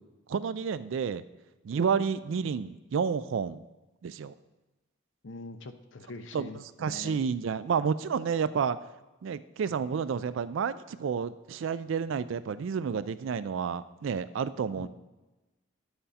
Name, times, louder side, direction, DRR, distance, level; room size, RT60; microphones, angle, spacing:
voice 1, 0.3-1.2 1.6-3.6 4.0-4.3 6.3-6.5 6.8-8.8 9.2-14.9, right 6 dB, 70° right, 15 dB, 0.3 m, -30 dB
voice 2, 5.2-6.6 6.9-7.2 14.8-14.9, left 2 dB, 65° left, 8 dB, 0.6 m, -43 dB
10.0 x 7.8 x 4.2 m, 1.1 s
head